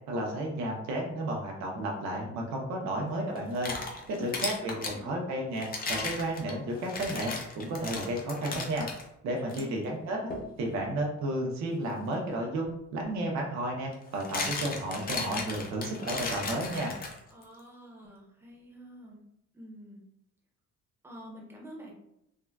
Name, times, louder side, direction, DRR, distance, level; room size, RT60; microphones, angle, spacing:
voice 1, 0.1-3.7 4.1-8.9 9.2-10.2 10.6-17.0, right 1 dB, 60° right, -1 dB, 0.6 m, -32 dB
sound 1, 3.3-5.0 5.6-9.0 9.5-9.6 10.3-10.5 12.6-12.7 13.9-17.4, left 3 dB, 30° left, 0.5 m, -36 dB
voice 2, 4.2-5.2 9.4-10.0 17.3-19.2 19.5-20.0 21.0-21.9, equal, 10° right, -2 dB, 0.7 m, -48 dB
3.5 x 2.1 x 2.2 m, 0.81 s
cardioid pair, 140°, 31 cm